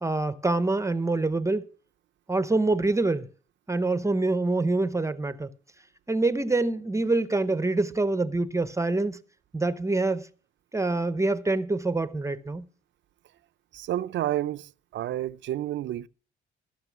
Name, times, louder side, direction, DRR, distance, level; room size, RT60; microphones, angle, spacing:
voice 1, 0.0-1.7 2.3-3.3 3.7-5.5 6.1-9.2 9.5-10.3 10.7-12.7, right 2 dB, 15° right, 0.7 m, -25 dB
voice 2, 13.7-16.1, right 13 dB, 70° right, 0.6 m, -30 dB
16.0 x 6.4 x 6.0 m
cardioid pair, 90°, 20 cm